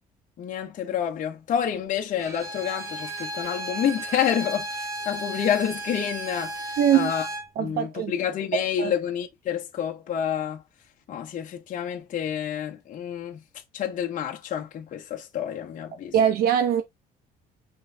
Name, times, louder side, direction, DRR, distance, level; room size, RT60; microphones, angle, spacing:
voice 1, 0.4-7.3 7.6-10.6 11.1-13.4 13.7-16.1, left 9 dB, 50° left, 1.1 m, -28 dB
Bowed string instrument, 2.2-7.5, right 1 dB, 20° right, 1.6 m, -34 dB
voice 2, 6.8-7.1 7.6-8.1 8.5-8.9 16.1-16.8, right 9 dB, 65° right, 0.7 m, -22 dB
5.3 x 3.2 x 2.8 m
cardioid pair, 110°, 17 cm